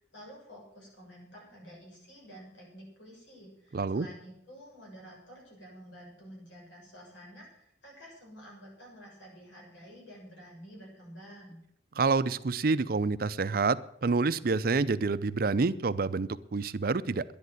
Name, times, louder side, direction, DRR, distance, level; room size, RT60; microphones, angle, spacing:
voice 1, 0.0-11.6, equal, 85° left, -2 dB, 7.3 m, -50 dB
voice 2, 3.7-4.1 12.0-17.2, right 4 dB, 55° right, 15 dB, 0.5 m, -28 dB
11.0 x 10.5 x 7.9 m, 0.71 s
head